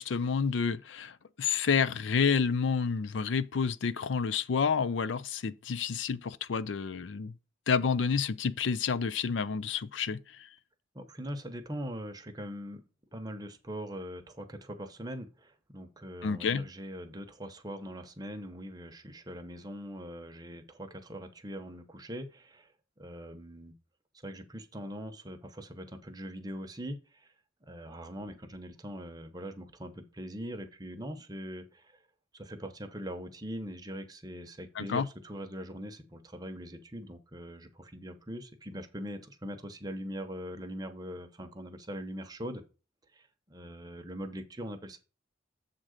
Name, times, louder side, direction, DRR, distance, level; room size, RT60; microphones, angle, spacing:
voice 1, 0.0-7.3 7.7-10.5 16.2-16.6 34.8-35.1, left 6 dB, 70° left, 0.4 m, -29 dB
voice 2, 10.9-22.7 23.0-23.7 24.2-27.3 27.7-32.0 32.3-42.6 43.1-45.0, equal, 20° right, 0.9 m, -42 dB
7.4 x 3.8 x 6.4 m
head